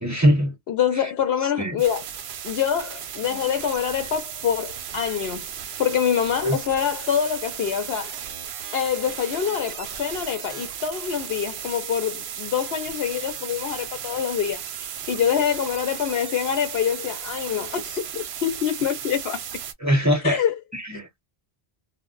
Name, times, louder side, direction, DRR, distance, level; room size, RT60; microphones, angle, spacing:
voice 1, 0.0-0.5 1.6-1.7 6.4-6.6 19.8-20.4 20.7-21.1, equal, 20° right, 0.6 m, -21 dB
voice 2, 0.7-2.1 2.4-5.5 5.8-8.2 8.7-19.4 20.2-20.6, left 8 dB, 80° left, 0.9 m, -25 dB
sound 1, 1.8-19.7, right 9 dB, 85° right, 0.8 m, -35 dB
2.1 x 2.1 x 3.7 m
omnidirectional pair, 1.0 m